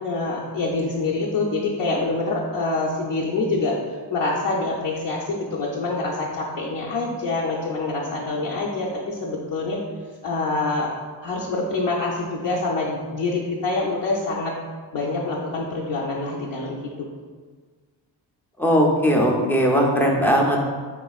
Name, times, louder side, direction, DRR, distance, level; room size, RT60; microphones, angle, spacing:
voice 1, 0.0-3.7 4.1-9.8 10.2-14.5 14.9-17.1, left 3 dB, 65° left, -5 dB, 0.7 m, -26 dB
voice 2, 18.6-20.6, equal, 5° left, -1 dB, 0.4 m, -19 dB
4.2 x 3.7 x 2.3 m, 1.5 s
wide cardioid pair, 115°, 46 cm